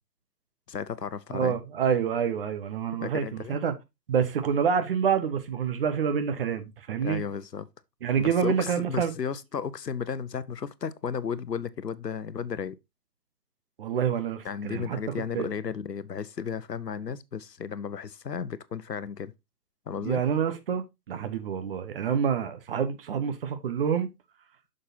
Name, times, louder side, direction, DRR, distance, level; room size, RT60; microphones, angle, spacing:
voice 1, 0.7-1.6 3.0-3.6 7.0-7.7 8.2-12.8 14.4-19.3 19.9-20.2, left 7 dB, 80° left, 0.9 m, -34 dB
voice 2, 1.3-3.7 4.1-7.2 8.0-9.1 13.8-15.0 15.3-15.5 20.0-24.1, right 7 dB, 35° right, 1.1 m, -27 dB
7.9 x 6.6 x 2.8 m
figure-of-eight pair, 135°, 48 cm